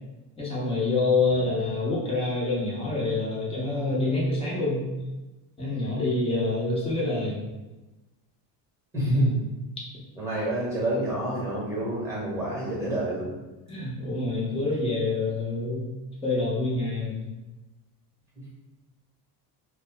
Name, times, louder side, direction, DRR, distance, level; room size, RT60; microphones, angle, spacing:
voice 1, 0.4-4.8 5.6-7.4 13.7-15.9 16.2-17.2, left 3 dB, 10° left, -6 dB, 0.7 m, -26 dB
voice 2, 8.9-9.3 10.1-13.3, right 1 dB, 5° right, -7 dB, 1.0 m, -27 dB
2.7 x 2.1 x 3.3 m, 1.1 s
cardioid pair, 145°, 47 cm